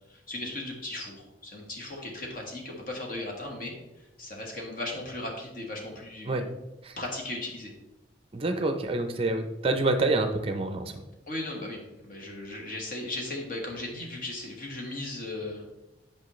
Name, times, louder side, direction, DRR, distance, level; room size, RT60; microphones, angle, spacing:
voice 1, 0.1-1.2 1.4-6.4 7.0-7.7 11.3-15.6, left 2 dB, 50° left, 0 dB, 1.5 m, -37 dB
voice 2, 8.3-11.0, right 2 dB, 30° right, 7 dB, 0.5 m, -27 dB
8.7 x 5.2 x 3.1 m, 0.99 s
head